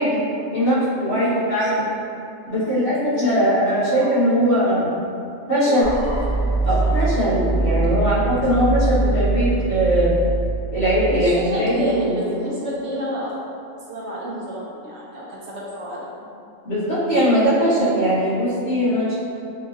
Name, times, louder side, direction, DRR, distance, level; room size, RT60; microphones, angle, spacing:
voice 1, 0.0-1.9 2.5-4.9 5.5-5.8 6.6-10.1 10.7-12.2 16.6-19.1, equal, 60° left, -12 dB, 1.6 m, -20 dB
voice 2, 1.2-1.7 2.5-4.3 5.6-7.0 7.5-7.8 8.5-8.6 11.0-13.3 13.9-16.2, equal, 65° right, -6 dB, 0.8 m, -31 dB
sound 1, 5.8-11.7, right 3 dB, 35° left, 1.5 m, -23 dB
3.8 x 2.5 x 2.6 m, 2.6 s
omnidirectional pair, 1.4 m